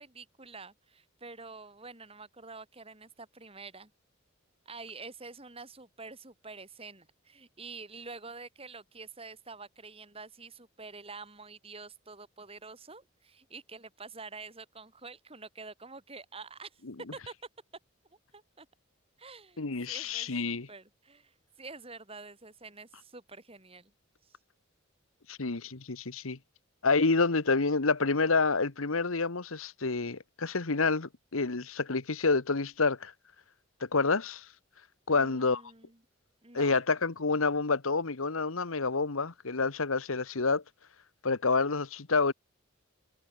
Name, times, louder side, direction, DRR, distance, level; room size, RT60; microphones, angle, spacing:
voice 1, 0.0-3.9 4.7-16.8 17.1-17.3 18.3-18.7 19.2-23.9 24.2-24.4 35.1-36.0 36.4-36.8, right 4 dB, 25° right, 3.6 m, -47 dB
voice 2, 19.6-20.7 25.3-26.4 26.8-33.1 33.8-34.5 35.1-35.6 36.5-40.6 41.2-42.3, left 4 dB, 80° left, 1.3 m, -28 dB
head